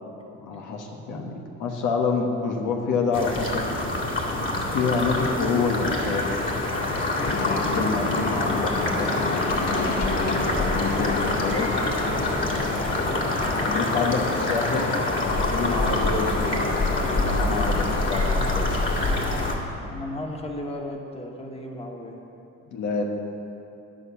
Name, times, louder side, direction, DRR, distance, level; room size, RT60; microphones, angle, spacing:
voice 1, 0.3-3.6 4.2-4.4 4.7-6.4 7.3-11.8 13.6-18.8 22.7-23.0, left 4 dB, 85° left, 0 dB, 1.4 m, -28 dB
sound 1, 3.1-19.5, left 2 dB, 40° left, 2.1 m, -25 dB
voice 2, 7.1-7.5 12.8-13.0 19.8-22.2, left 1 dB, 20° left, 0 dB, 1.6 m, -35 dB
sound 2, 7.2-17.4, left 3 dB, 65° left, 1.5 m, -33 dB
9.8 x 7.8 x 7.1 m, 2.9 s
cardioid pair, 90°, 30 cm